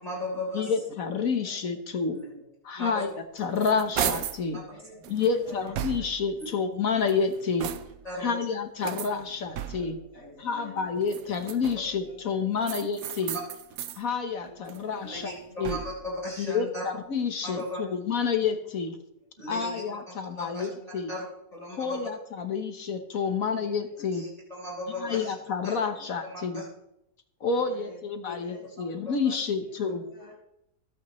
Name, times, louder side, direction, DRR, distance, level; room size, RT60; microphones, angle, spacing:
voice 1, 0.0-0.7 2.1-2.3 2.8-3.0 4.5-4.6 6.4-6.5 8.0-8.4 15.0-16.8 17.4-17.8 19.4-19.8 20.4-20.7 21.1-21.3 21.5-22.0 24.1-25.3 25.6-25.7 26.3-26.6 28.2-28.3 29.0-29.3, left 1 dB, 20° left, -5 dB, 4.0 m, -36 dB
voice 2, 0.5-2.2 2.6-4.6 5.1-7.7 8.2-10.0 10.4-13.4 14.0-15.3 15.6-15.8 16.4-19.0 19.5-21.1 21.8-24.2 25.0-26.6 27.4-30.0, left 5 dB, 60° left, 7 dB, 1.4 m, -29 dB
voice 3, 2.0-2.4 4.7-6.1 8.2-8.3 9.7-10.9 11.7-12.7 14.4-15.5 17.8-17.9 20.3-20.9 23.2-23.7 25.0-25.1 27.5-28.0 28.4-28.6 30.1-30.4, left 2 dB, 85° left, -4 dB, 5.2 m, -50 dB
sound 1, 3.1-4.5 5.0-6.3 6.9-8.1 8.8-10.1 11.0-12.0 12.6-14.0 14.4-16.1, right 10 dB, 65° right, 1.0 m, -36 dB
24.0 x 8.6 x 3.1 m, 0.80 s
omnidirectional pair, 1.7 m